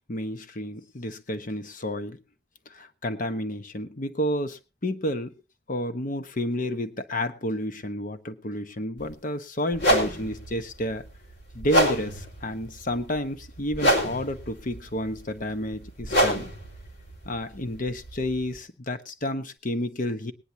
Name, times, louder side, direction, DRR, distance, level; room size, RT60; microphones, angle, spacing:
voice 1, 0.0-2.2 2.7-5.3 5.7-11.0 11.5-16.4 17.2-20.3, left 1 dB, 50° left, 9 dB, 1.1 m, -31 dB
sound 1, 9.0-9.1 9.7-18.6, equal, 85° left, 4.7 m, -27 dB
20.5 x 10.0 x 2.9 m, 0.28 s
head